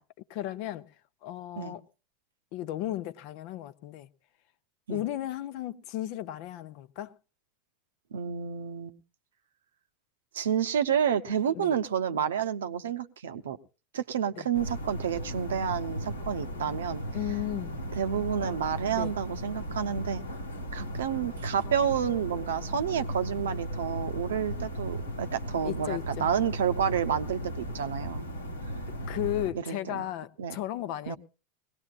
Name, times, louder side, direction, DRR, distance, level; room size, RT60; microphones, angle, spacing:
voice 1, 0.3-0.9 1.2-1.8 2.5-4.1 4.9-7.1 11.5-11.7 14.3-14.5 17.1-17.8 19.0-19.1 25.6-26.3 29.1-31.2, left 13 dB, 55° left, 0.7 m, -35 dB
voice 2, 8.1-9.0 10.3-13.6 13.9-17.0 18.0-20.2 20.7-28.3 29.7-30.0 30.4-30.6 31.1-31.2, right 8 dB, 70° right, 0.7 m, -30 dB
sound 1, 14.5-29.5, equal, 85° left, 1.4 m, -36 dB
21.0 x 17.5 x 2.4 m
figure-of-eight pair, 85°, 0 cm